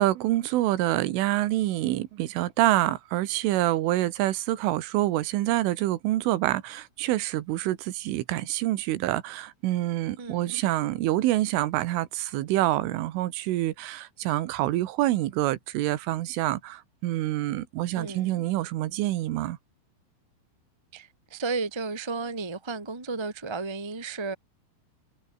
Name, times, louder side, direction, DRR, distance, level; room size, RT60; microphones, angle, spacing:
voice 1, 0.0-19.6, right 15 dB, 80° right, 3.8 m, -26 dB
voice 2, 10.2-10.6 17.9-18.5 20.9-24.3, right 4 dB, 25° right, 0.5 m, -33 dB
omnidirectional pair, 5.8 m